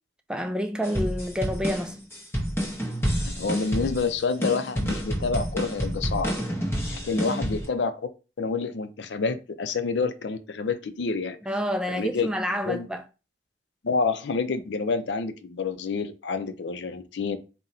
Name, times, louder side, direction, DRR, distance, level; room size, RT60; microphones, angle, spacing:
voice 1, 0.3-2.0 7.1-7.4 11.5-13.0, equal, 5° right, 0.3 m, -29 dB
sound 1, 0.8-7.7, equal, 15° left, 0.8 m, -29 dB
voice 2, 3.2-6.3 6.8-8.1 8.4-11.4 11.9-12.3 12.6-12.9 13.8-17.4, left 4 dB, 80° left, 0.5 m, -28 dB
3.8 x 2.2 x 4.1 m
head